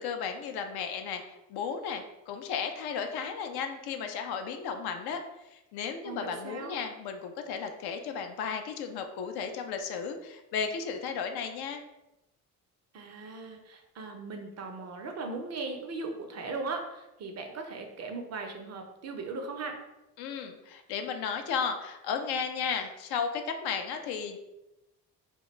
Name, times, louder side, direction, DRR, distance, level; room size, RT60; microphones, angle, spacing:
voice 1, 0.0-5.2 5.5-11.8 20.2-24.4, left 6 dB, 60° left, 6 dB, 0.5 m, -34 dB
voice 2, 6.0-6.8 12.9-19.7, right 3 dB, 35° right, 4 dB, 0.5 m, -38 dB
2.4 x 2.1 x 2.9 m, 0.93 s
hypercardioid pair, 50°, 45 cm